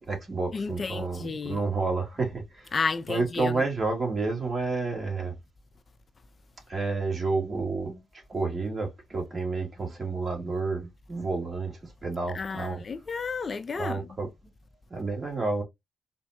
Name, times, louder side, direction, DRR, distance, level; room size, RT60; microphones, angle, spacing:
voice 1, 0.0-2.7 3.1-5.3 6.7-8.0 8.3-11.7 12.0-12.8 13.7-14.3 14.9-15.6, right 3 dB, 40° right, 1.8 m, -30 dB
voice 2, 0.5-1.6 2.7-3.6 12.3-14.1, left 4 dB, 45° left, 0.4 m, -32 dB
4.0 x 2.1 x 2.7 m
hypercardioid pair, 40°, 0 cm